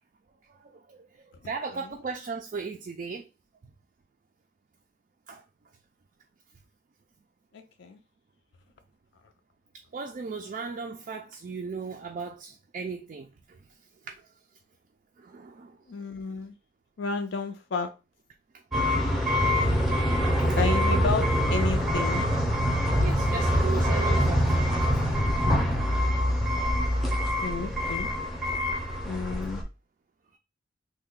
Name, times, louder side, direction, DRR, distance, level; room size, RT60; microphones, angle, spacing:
voice 1, 0.6-3.3 5.3-5.4 9.9-13.3 15.2-15.8 20.4-20.7 23.0-24.4 24.9-25.0, right 4 dB, 40° right, 0.3 m, -36 dB
voice 2, 1.4-1.9 7.5-8.0 15.9-16.6 17.0-17.9 20.6-22.3 27.4-28.1 29.0-29.6, left 4 dB, 65° left, 0.4 m, -32 dB
sound 1, 18.7-29.6, equal, ahead, 0.6 m, -25 dB
3.2 x 2.1 x 3.6 m
head